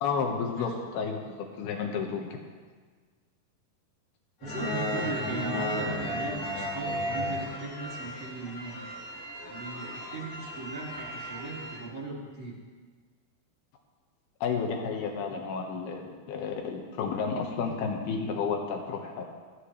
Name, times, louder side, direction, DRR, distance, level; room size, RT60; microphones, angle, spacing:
voice 1, 0.0-2.4 14.4-19.2, left 5 dB, 75° left, 2 dB, 3.2 m, -31 dB
sound 1, 4.4-11.8, equal, 40° left, 4.5 m, -34 dB
voice 2, 4.4-8.8 9.4-12.6, right 2 dB, 35° right, -5 dB, 2.3 m, -38 dB
27.0 x 10.0 x 3.2 m, 1.5 s
omnidirectional pair, 4.6 m